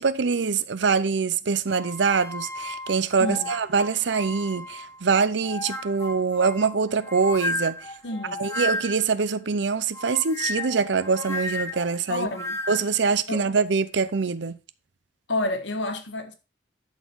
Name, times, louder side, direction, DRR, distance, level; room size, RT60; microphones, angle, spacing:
voice 1, 0.0-7.9 8.4-12.3 12.7-14.6, right 5 dB, 70° right, 0.6 m, -24 dB
sound 1, 1.7-5.0 5.4-9.2 9.9-13.0, left 2 dB, 15° left, 1.2 m, -34 dB
voice 2, 8.0-8.4 12.1-12.6 13.3-13.4 15.3-16.3, left 2 dB, 75° left, 1.6 m, -29 dB
11.5 x 4.5 x 4.6 m
head